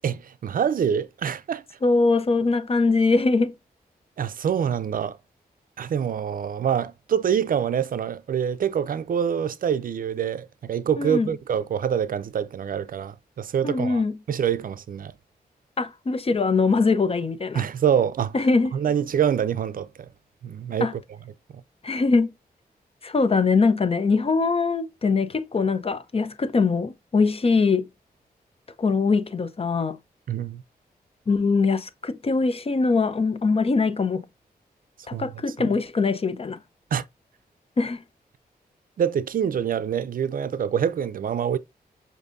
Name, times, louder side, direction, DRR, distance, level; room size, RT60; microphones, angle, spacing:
voice 1, 0.0-1.6 4.2-5.2 5.8-14.0 14.3-15.1 17.5-18.3 18.7-19.9 20.4-21.0 30.3-30.6 35.1-35.3 36.9-37.0 39.0-41.6, right 8 dB, 60° right, 0.4 m, -25 dB
voice 2, 1.8-3.5 11.0-11.3 13.6-14.2 15.8-17.6 18.3-18.7 20.8-20.9 21.8-22.3 23.0-27.9 28.8-30.0 31.3-34.3 35.1-36.6 37.8-38.0, left 4 dB, 35° left, 0.6 m, -22 dB
6.4 x 2.6 x 2.5 m
cardioid pair, 70°, 17 cm